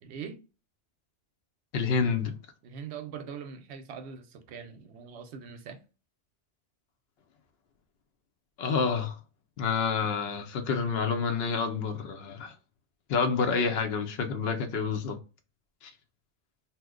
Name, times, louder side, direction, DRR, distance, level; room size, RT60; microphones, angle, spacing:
voice 1, 0.0-0.4 2.6-5.8, right 7 dB, 65° right, 0.8 m, -42 dB
voice 2, 1.7-2.3 8.6-9.2 9.6-12.5 13.1-15.2 15.8-15.9, left 5 dB, 60° left, 0.8 m, -28 dB
2.9 x 2.0 x 3.6 m
omnidirectional pair, 1.3 m